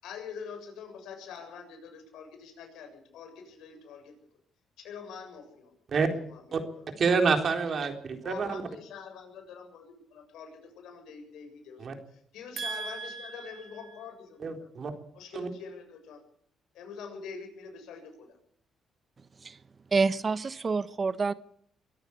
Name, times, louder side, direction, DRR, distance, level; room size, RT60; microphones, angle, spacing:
voice 1, 0.0-4.1 4.8-5.7 6.0-6.9 8.2-14.7 15.1-16.2 16.7-18.4, left 6 dB, 85° left, 5 dB, 7.2 m, -45 dB
voice 2, 7.0-8.6 11.8-11.9 12.6-13.6 14.4-14.9 15.3-15.5, right 5 dB, 50° right, 5 dB, 3.9 m, -28 dB
voice 3, 19.9-21.3, right 4 dB, 35° right, 15 dB, 1.0 m, -27 dB
23.0 x 13.5 x 8.5 m, 0.65 s
cardioid pair, 90°, 0 cm